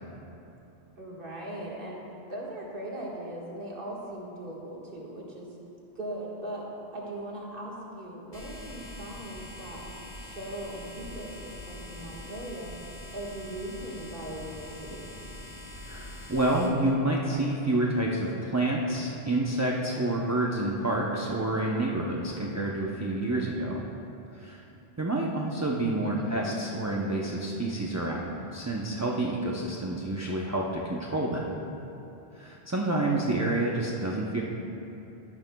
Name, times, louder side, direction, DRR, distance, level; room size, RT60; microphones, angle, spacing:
voice 1, 1.0-2.0 2.3-5.6 6.0-6.7 6.9-9.8 10.2-12.7 13.1-15.1 26.2-26.6, right 1 dB, 55° right, -4 dB, 1.8 m, -39 dB
sound 1, 8.3-16.7, left 1 dB, 55° left, 1.8 m, -43 dB
voice 2, 15.8-23.8 24.3-24.6 25.0-31.5 32.3-34.4, right 1 dB, 20° right, -3 dB, 0.5 m, -28 dB
13.5 x 11.0 x 2.3 m, 3.0 s
omnidirectional pair, 1.1 m